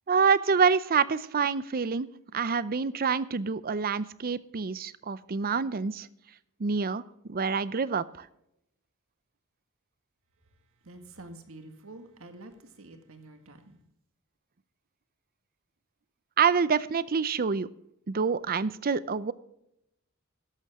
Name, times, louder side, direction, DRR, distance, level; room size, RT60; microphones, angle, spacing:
voice 1, 0.1-6.1 6.6-7.0 7.3-8.3 16.4-17.7 18.1-19.3, right 5 dB, 45° right, 0.6 m, -27 dB
voice 2, 10.8-13.8, right 2 dB, 70° right, 1.9 m, -48 dB
13.0 x 11.0 x 3.6 m
head